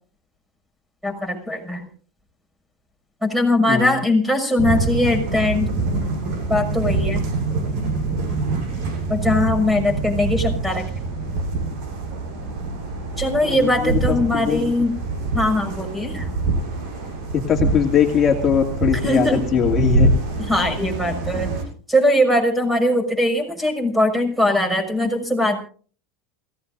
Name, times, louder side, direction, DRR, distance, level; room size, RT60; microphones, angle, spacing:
voice 1, 1.0-1.9 3.2-5.7 6.5-7.2 9.1-10.9 13.2-14.9 15.3-16.3 19.0-19.4 20.4-21.5 21.9-25.6, left 1 dB, 5° right, 7 dB, 6.2 m, -20 dB
sound 1, 4.6-21.6, right 3 dB, 60° right, 7.9 m, -25 dB
voice 2, 13.4-13.9 14.3-14.6 17.3-20.1, left 8 dB, 30° left, 1 dB, 2.4 m, -20 dB
28.5 x 17.0 x 2.6 m, 0.42 s
supercardioid pair, 135°, 0 cm